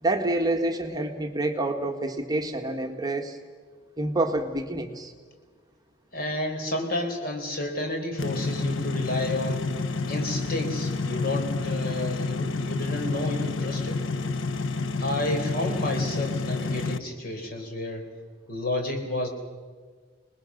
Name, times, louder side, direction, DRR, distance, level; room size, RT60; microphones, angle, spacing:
voice 1, 0.0-3.4 4.0-5.1, right 2 dB, 20° right, 4 dB, 1.5 m, -27 dB
voice 2, 6.1-9.6 10.1-14.0 15.0-18.0 18.5-19.3, left 1 dB, 50° left, 3 dB, 4.3 m, -30 dB
sound 1, 8.2-17.0, left 3 dB, 80° left, 0.8 m, -29 dB
27.5 x 20.5 x 6.4 m, 1.5 s
head